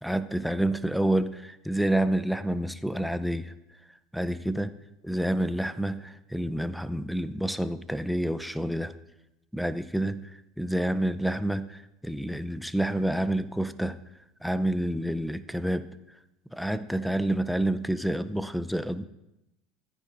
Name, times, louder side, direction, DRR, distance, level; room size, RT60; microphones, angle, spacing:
voice 1, 0.0-3.5 4.1-4.7 5.0-8.9 9.5-10.3 10.6-14.0 14.4-15.9 16.5-19.1, right 1 dB, ahead, 12 dB, 0.5 m, -28 dB
14.5 x 9.7 x 2.5 m, 0.90 s
supercardioid pair, 100°, 0 cm